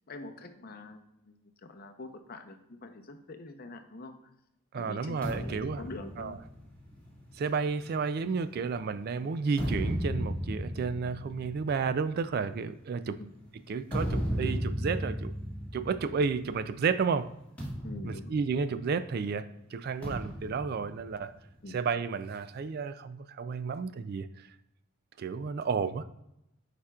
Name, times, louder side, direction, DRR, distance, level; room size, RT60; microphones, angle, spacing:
voice 1, 0.1-1.4 1.6-4.1 4.7-6.4 9.2-9.3 13.2-13.4 17.8-18.4 21.6-21.8, left 2 dB, 45° left, 6 dB, 0.7 m, -45 dB
voice 2, 4.7-5.8 6.2-6.4 7.4-13.2 13.7-15.3 15.7-17.3 18.1-19.4 19.7-21.3 21.7-24.3 25.2-26.0, right 5 dB, 50° right, 13 dB, 0.3 m, -31 dB
sound 1, 5.2-8.8 9.3-16.8 17.0-17.2 17.6-19.2 20.0-21.8, equal, 5° left, 1.9 m, -36 dB
8.6 x 5.0 x 2.3 m, 0.83 s
head